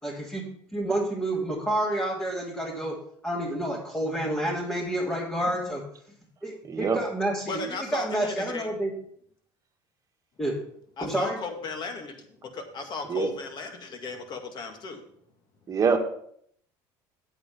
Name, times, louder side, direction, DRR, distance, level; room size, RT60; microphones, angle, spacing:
voice 1, 0.0-0.4 0.7-3.0 3.2-5.8 6.4-8.9 10.4-10.6 11.0-11.4, right 1 dB, 10° left, -5 dB, 3.1 m, -29 dB
voice 2, 6.7-7.0 13.1-13.3 15.7-16.0, right 6 dB, 35° right, 3 dB, 1.7 m, -24 dB
voice 3, 7.5-8.7 11.0-12.3 12.5-15.0, left 4 dB, 45° left, 5 dB, 2.2 m, -35 dB
8.4 x 8.2 x 5.3 m, 0.65 s
supercardioid pair, 90°, 10 cm